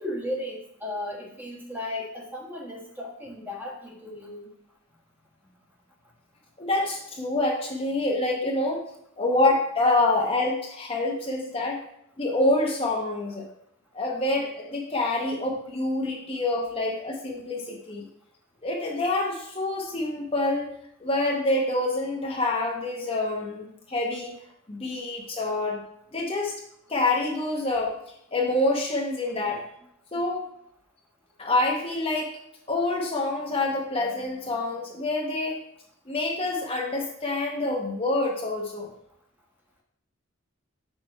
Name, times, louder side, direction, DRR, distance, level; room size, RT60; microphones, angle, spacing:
voice 1, 0.0-4.5, left 1 dB, 10° right, -2 dB, 1.2 m, -35 dB
voice 2, 6.6-8.8 9.2-11.8 12.2-13.4 13.9-18.1 18.6-20.7 21.0-24.3 24.7-25.8 26.1-26.6 26.9-27.9 28.3-29.6 30.1-30.5 31.4-32.3 32.7-35.6 36.1-38.9, left 2 dB, 25° left, -1 dB, 0.9 m, -26 dB
6.3 x 6.0 x 4.4 m, 0.75 s
head